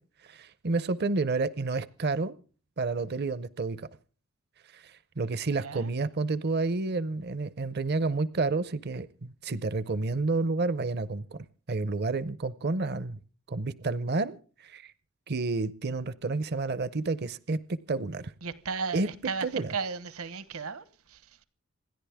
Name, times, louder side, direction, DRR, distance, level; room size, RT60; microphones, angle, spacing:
voice 1, 0.2-2.4 2.8-3.9 4.7-11.4 11.7-13.2 13.5-14.9 15.3-18.3 18.9-19.1 19.4-19.7, right 3 dB, 45° right, 0.7 m, -30 dB
voice 2, 18.4-21.4, right 5 dB, 70° right, 1.2 m, -35 dB
27.0 x 11.0 x 3.5 m
head